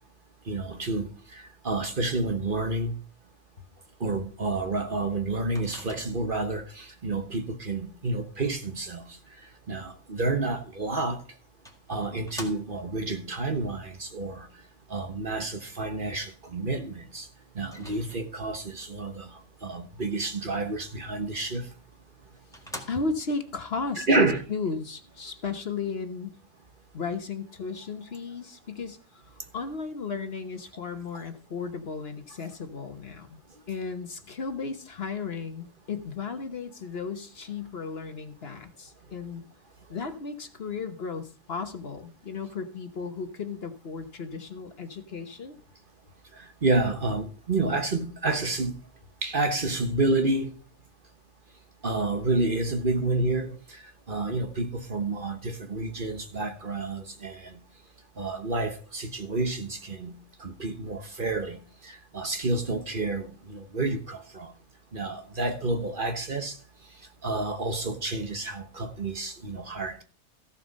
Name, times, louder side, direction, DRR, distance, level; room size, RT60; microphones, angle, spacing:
voice 1, 0.5-2.9 4.0-9.0 9.7-11.2 11.9-14.5 14.9-17.3 17.5-19.3 19.6-21.7 24.0-24.4 46.6-48.7 49.2-50.5 51.8-53.6 54.1-57.6 58.2-64.5 64.9-66.6 67.2-70.0, right 2 dB, 40° right, 1.3 m, -29 dB
Microwave oven, 5.6-6.5 10.8-10.9 11.7-13.0 17.6-18.5 21.7-21.8 22.2-22.3 22.5-23.4, left 1 dB, ahead, 1.8 m, -44 dB
voice 2, 22.9-26.4 26.9-33.4 33.7-39.4 39.9-45.5, left 4 dB, 50° left, 1.3 m, -35 dB
14.5 x 7.2 x 5.3 m
omnidirectional pair, 1.4 m